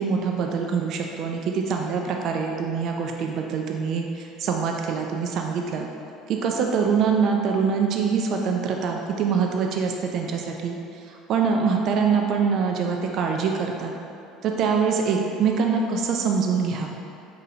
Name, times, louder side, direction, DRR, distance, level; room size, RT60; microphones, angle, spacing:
voice 1, 0.0-5.9 6.3-10.8 11.1-13.9 14.4-17.0, right 5 dB, 55° right, 2 dB, 0.3 m, -24 dB
5.2 x 2.7 x 2.7 m, 2.6 s
supercardioid pair, 95°, 0 cm